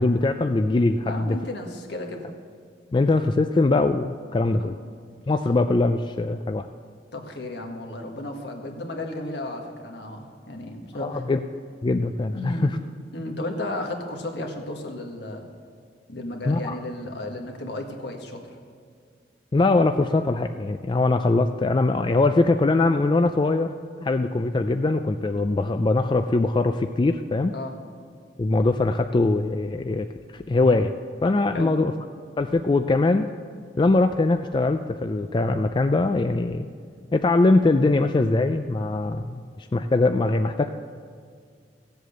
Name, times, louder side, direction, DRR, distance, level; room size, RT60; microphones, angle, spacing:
voice 1, 0.0-1.4 2.9-4.8 5.3-6.7 11.0-11.4 11.8-12.7 16.5-16.8 19.5-23.7 24.0-27.5 28.4-30.1 30.3-30.9 31.2-31.9 32.4-33.3 33.8-36.7 37.1-40.7, left 2 dB, 25° left, 7 dB, 0.3 m, -22 dB
voice 2, 1.1-2.3 4.6-4.7 7.1-11.2 12.3-12.7 13.1-15.5 16.1-18.4 27.5-27.8 31.5-31.7, left 1 dB, 70° left, 2 dB, 1.6 m, -33 dB
15.5 x 7.9 x 6.6 m, 2.1 s
head